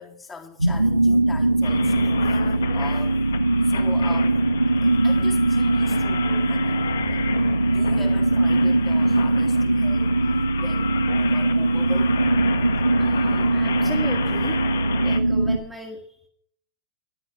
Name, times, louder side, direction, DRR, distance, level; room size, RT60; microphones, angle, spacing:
voice 1, 0.0-2.4 2.7-3.3 3.6-4.4 4.8-7.3 7.6-10.3 10.6-12.2, left 4 dB, 20° left, 3.6 m, -41 dB
sound 1, 0.6-15.6, right 2 dB, 85° right, 0.8 m, -21 dB
sound 2, 1.6-15.2, left 6 dB, 65° left, 1.2 m, -33 dB
voice 2, 13.0-14.6 15.0-16.3, right 1 dB, 5° right, 2.0 m, -36 dB
14.0 x 11.0 x 5.7 m
figure-of-eight pair, 90°, 0 cm